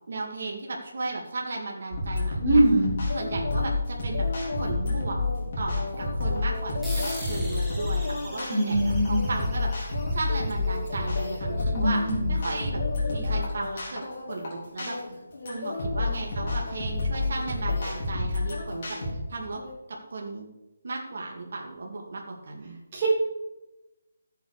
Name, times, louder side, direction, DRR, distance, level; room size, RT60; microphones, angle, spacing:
voice 1, 0.1-2.6 3.1-4.3 4.6-5.2 5.6-9.7 10.1-12.0 12.3-14.0 14.3-15.0 15.4-19.0 19.3-19.6 19.9-20.5 20.8-22.8, right 3 dB, 55° right, 0 dB, 2.3 m, -35 dB
sound 1, 1.9-19.1, left 3 dB, 35° left, 4.0 m, -29 dB
voice 2, 2.4-2.9 8.5-9.2 11.7-12.3 22.9-23.2, right 1 dB, 25° right, -5 dB, 4.7 m, -22 dB
sound 2, 3.1-3.8 4.1-12.1 12.4-13.8 14.0-14.5 14.8-18.2 18.5-19.1 19.5-19.7, left 3 dB, 60° left, 3.3 m, -37 dB
sound 3, 6.8-11.8, equal, ahead, 1.8 m, -43 dB
14.0 x 8.2 x 4.9 m, 0.99 s
hypercardioid pair, 175°, 0 cm